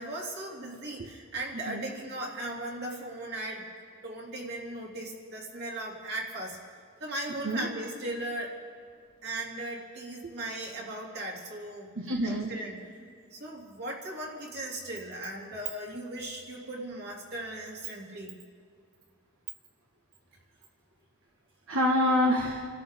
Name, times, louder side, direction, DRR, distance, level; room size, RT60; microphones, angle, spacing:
voice 1, 0.0-3.7 4.0-6.6 7.0-8.5 9.2-11.9 12.2-12.9 13.3-18.4, right 1 dB, 55° right, -2 dB, 3.0 m, -37 dB
voice 2, 11.9-12.5 21.7-22.7, left 1 dB, 80° right, -2 dB, 1.6 m, -26 dB
29.5 x 13.0 x 3.7 m, 2.1 s
head